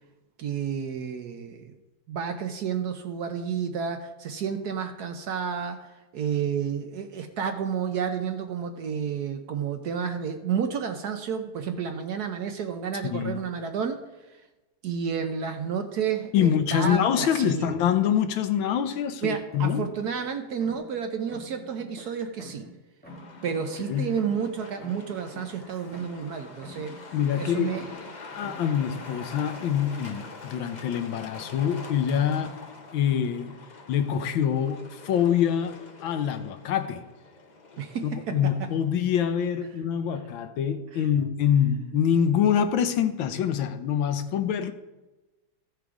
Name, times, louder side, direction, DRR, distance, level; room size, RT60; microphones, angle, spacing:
voice 1, 0.4-1.7 2.1-5.8 6.1-14.0 14.8-17.8 19.2-22.7 23.4-27.0 27.4-27.9 32.3-32.4 37.8-38.7, right 7 dB, 65° right, 1.1 m, -31 dB
voice 2, 13.0-13.4 16.3-19.9 23.9-24.1 27.1-27.8 28.2-32.5 32.9-33.6 33.9-37.0 38.0-44.7, left 9 dB, 80° left, 1.5 m, -25 dB
sound 1, 19.5-21.0 21.3-22.8 23.0-26.3 26.6-28.1 28.4-29.9, left 1 dB, 5° left, 1.7 m, -47 dB
Truck, 23.0-38.9, left 3 dB, 45° left, 0.6 m, -45 dB
14.5 x 5.1 x 4.7 m
omnidirectional pair, 2.2 m